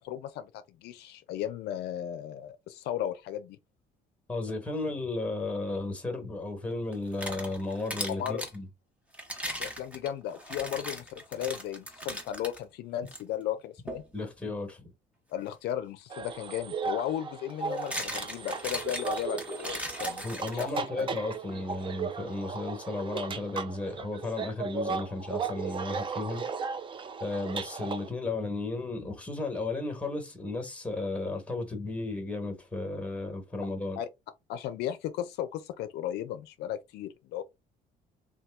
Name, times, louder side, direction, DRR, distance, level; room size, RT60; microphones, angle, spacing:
voice 1, 0.0-3.6 8.2-8.5 9.6-14.0 15.3-20.2 20.5-20.7 21.0-21.1 34.0-34.1 34.5-37.4, left 11 dB, 75° left, 0.4 m, -35 dB
voice 2, 4.3-8.7 14.1-14.9 20.2-26.5 27.2-34.0, left 2 dB, 5° left, 1.1 m, -34 dB
sound 1, 6.9-8.6 9.1-12.6 13.1-13.2 13.9-14.1 16.2-16.3 17.5-21.0, equal, 10° right, 0.9 m, -38 dB
sound 2, 16.1-28.1, right 5 dB, 30° right, 0.4 m, -36 dB
2.8 x 2.3 x 3.4 m
cardioid pair, 110°, 17 cm